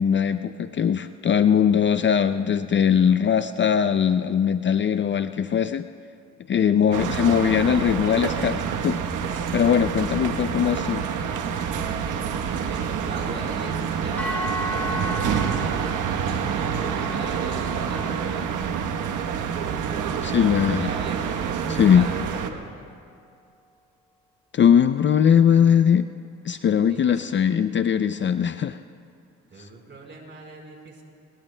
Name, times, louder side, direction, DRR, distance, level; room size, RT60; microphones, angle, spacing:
voice 1, 0.0-5.9 6.5-9.0 9.5-11.0 20.2-20.9 21.8-22.1 24.5-26.1 26.4-28.8 29.6-29.7, left 8 dB, 40° left, 10 dB, 0.5 m, -20 dB
sound 1, 6.9-22.5, right 7 dB, 85° right, 1.1 m, -27 dB
voice 2, 12.6-18.7 19.8-22.6 26.9-27.3 29.5-31.0, right 2 dB, 40° right, 0 dB, 4.3 m, -40 dB
sound 2, 14.2-22.4, equal, 5° left, 4.9 m, -37 dB
28.5 x 21.5 x 2.2 m, 2.4 s
cardioid pair, 90°, 30 cm